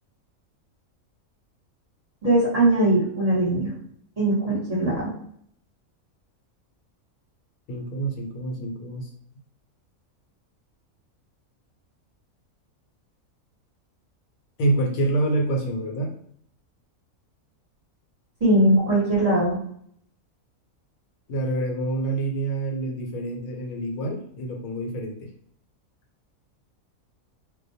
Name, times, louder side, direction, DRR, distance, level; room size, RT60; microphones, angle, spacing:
voice 1, 2.2-3.7 4.2-5.1 18.4-19.6, right 1 dB, 35° right, -7 dB, 0.8 m, -20 dB
voice 2, 7.7-9.1 14.6-16.2 21.3-25.3, right 2 dB, 80° left, 1 dB, 1.0 m, -27 dB
2.2 x 2.1 x 2.7 m, 0.66 s
omnidirectional pair, 1.5 m